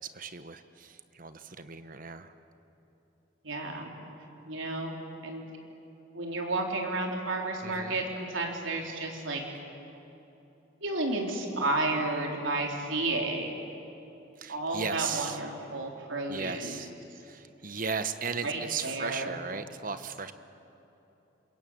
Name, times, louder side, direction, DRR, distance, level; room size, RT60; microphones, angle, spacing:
voice 1, 0.0-2.3 7.6-8.0 14.4-15.4 16.3-20.3, right 5 dB, 45° right, 10 dB, 1.1 m, -36 dB
voice 2, 3.4-3.9 4.4-5.0 5.2-5.4 6.1-9.4 10.8-13.5 14.5-16.8 18.4-19.4, right 2 dB, 85° right, 1 dB, 3.8 m, -32 dB
26.5 x 22.5 x 9.0 m, 3.0 s
head